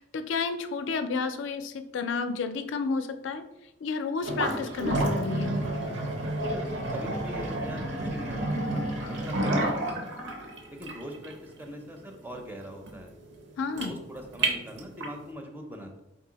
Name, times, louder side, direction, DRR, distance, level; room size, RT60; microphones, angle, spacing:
voice 1, 0.0-3.4 3.8-5.5 13.6-14.0, left 4 dB, 75° left, 8 dB, 0.4 m, -31 dB
sound 1, 4.2-15.2, right 1 dB, 70° right, 0.8 m, -30 dB
voice 2, 6.5-10.2 10.7-13.1 13.8-16.0, equal, 10° right, 3 dB, 0.5 m, -42 dB
3.7 x 2.7 x 3.9 m, 0.90 s
head